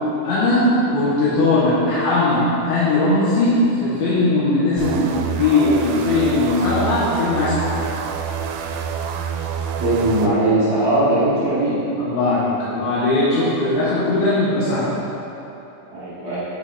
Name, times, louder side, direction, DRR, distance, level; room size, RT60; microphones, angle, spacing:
voice 1, 0.2-0.7 0.9-7.7 12.0-14.9, left 2 dB, 90° left, -10 dB, 3.7 m, -19 dB
sound 1, 4.8-10.3, right 7 dB, 90° right, 3.0 m, -27 dB
voice 2, 9.8-11.7 15.9-16.4, right 1 dB, 50° right, -12 dB, 2.4 m, -19 dB
9.1 x 5.5 x 4.2 m, 3.0 s
omnidirectional pair, 5.2 m